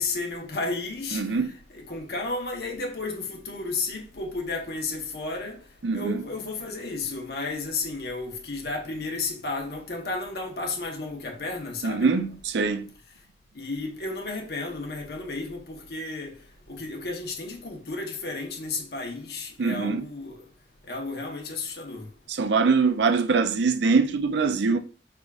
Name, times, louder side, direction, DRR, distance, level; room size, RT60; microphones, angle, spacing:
voice 1, 0.0-5.6 5.9-12.1 13.5-16.4 16.7-20.4 20.9-22.1, left 3 dB, 60° left, 1.0 m, -33 dB
voice 2, 1.1-1.5 5.8-6.2 11.8-12.9 19.6-20.0 22.3-24.8, right 4 dB, 80° right, 0.5 m, -23 dB
4.8 x 3.5 x 2.4 m
head